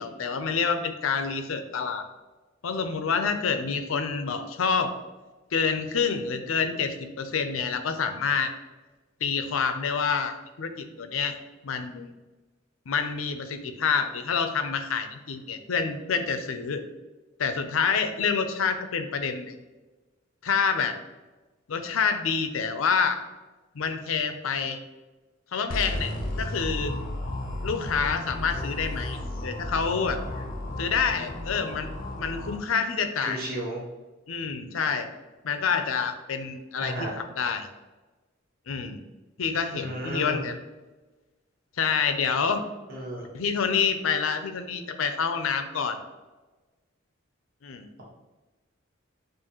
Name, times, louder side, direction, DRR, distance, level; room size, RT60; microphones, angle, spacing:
voice 1, 0.0-2.0 2.6-4.9 5.5-8.5 9.2-11.4 11.6-12.1 12.9-16.8 17.4-19.6 20.4-20.9 21.7-23.2 23.7-24.8 25.5-26.1 26.4-26.9 27.6-30.2 30.8-31.9 32.2-33.4 34.3-35.1 35.4-37.7 38.7-39.0 39.4-40.6 41.8-42.6 43.3-46.0 47.6-47.9, left 6 dB, 85° left, 8 dB, 0.5 m, -27 dB
sound 1, 25.7-32.6, left 1 dB, 45° left, 0.8 m, -33 dB
voice 2, 33.3-33.8 36.8-37.1 39.7-40.4 42.9-43.2, right 1 dB, 50° right, -4 dB, 1.2 m, -33 dB
7.1 x 2.5 x 2.9 m, 1.2 s
head